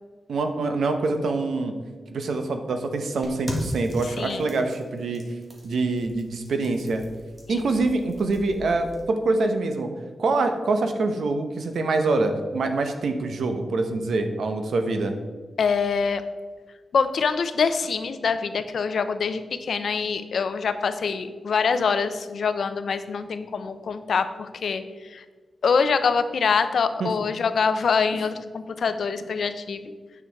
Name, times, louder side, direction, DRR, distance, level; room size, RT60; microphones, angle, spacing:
voice 1, 0.3-1.7 2.1-5.2 5.6-7.0 7.5-9.9 10.2-15.1 27.0-27.1, right 3 dB, 90° right, 6 dB, 0.9 m, -25 dB
sound 1, 3.2-9.0, equal, 25° right, 1.7 m, -39 dB
voice 2, 4.0-4.4 7.5-7.6 15.6-16.2 16.9-25.2 25.6-29.8, left 5 dB, 75° left, 10 dB, 0.6 m, -25 dB
9.0 x 6.1 x 4.6 m, 1.4 s
wide cardioid pair, 145°, 0 cm